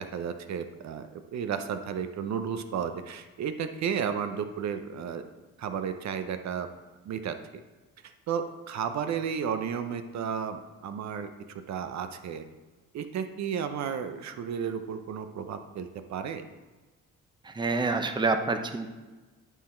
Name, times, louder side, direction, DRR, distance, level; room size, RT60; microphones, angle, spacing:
voice 1, 0.0-5.2 5.6-6.7 7.1-7.4 8.0-12.5 12.9-16.4, right 7 dB, 65° right, 9 dB, 0.7 m, -33 dB
voice 2, 17.4-18.9, right 3 dB, 15° right, 6 dB, 0.7 m, -27 dB
11.0 x 3.9 x 4.4 m, 1.2 s
cardioid pair, 90°, 30 cm